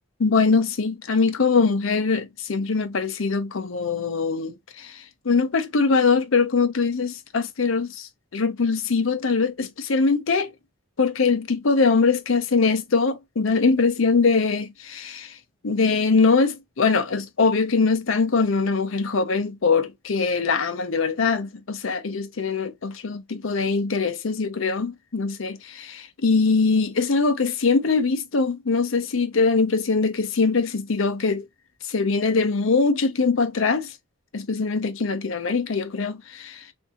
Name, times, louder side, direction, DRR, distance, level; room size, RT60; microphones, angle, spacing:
voice 1, 0.2-10.5 11.0-15.4 15.6-31.5 31.8-34.0 34.3-36.7, left 4 dB, 65° left, 0.6 m, -22 dB
3.6 x 2.7 x 2.6 m
head